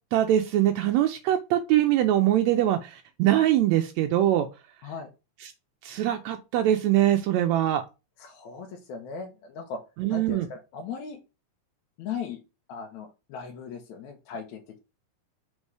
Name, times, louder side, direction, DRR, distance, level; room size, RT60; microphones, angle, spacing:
voice 1, 0.1-4.5 5.8-7.8 10.0-10.5, right 12 dB, 80° right, 6 dB, 1.8 m, -23 dB
voice 2, 8.2-9.8 10.1-11.2 12.0-12.4 12.7-14.6, left 6 dB, 80° left, 1 dB, 2.2 m, -38 dB
5.5 x 3.7 x 4.7 m, 0.27 s
omnidirectional pair, 3.4 m